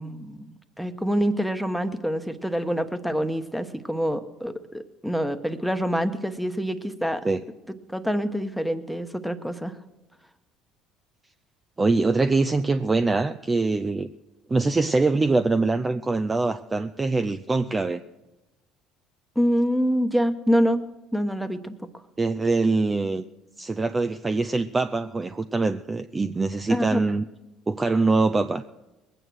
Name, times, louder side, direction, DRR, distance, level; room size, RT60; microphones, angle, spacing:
voice 1, 0.0-7.2 7.9-9.8 19.3-20.8 21.1-21.8 26.7-27.0, equal, ahead, 10 dB, 1.1 m, -26 dB
voice 2, 11.8-14.1 14.5-18.0 22.2-23.2 23.6-27.3 27.7-28.6, right 3 dB, 20° right, 9 dB, 0.5 m, -23 dB
20.5 x 9.1 x 6.3 m, 1.1 s
supercardioid pair, 80°, 0 cm